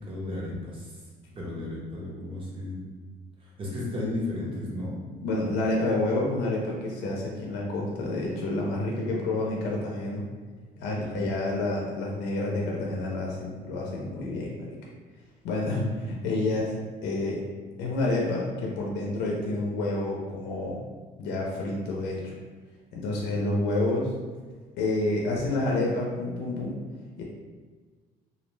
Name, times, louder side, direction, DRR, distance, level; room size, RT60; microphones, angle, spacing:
voice 1, 0.1-1.0 1.3-2.9 3.4-5.0 5.5-5.6 11.1-11.3, left 2 dB, 30° right, -5 dB, 0.9 m, -34 dB
voice 2, 5.2-10.2 10.8-14.7 15.4-16.7 17.0-17.4 17.8-20.8 21.2-22.3 22.9-24.1 24.8-26.8 27.2-27.3, left 2 dB, 90° left, -2 dB, 0.5 m, -29 dB
2.4 x 2.0 x 3.1 m, 1.4 s
cardioid pair, 110°, 17 cm